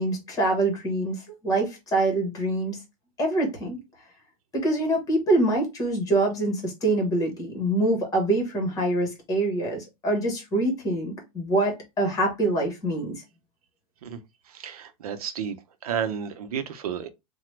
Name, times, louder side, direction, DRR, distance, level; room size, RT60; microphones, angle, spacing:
voice 1, 0.0-2.8 3.2-3.8 4.5-13.2, right 2 dB, 20° left, 1.2 m, -25 dB
voice 2, 14.5-15.6 15.8-17.1, right 8 dB, 90° right, 0.7 m, -31 dB
2.9 x 2.2 x 3.2 m
supercardioid pair, 150°, 18 cm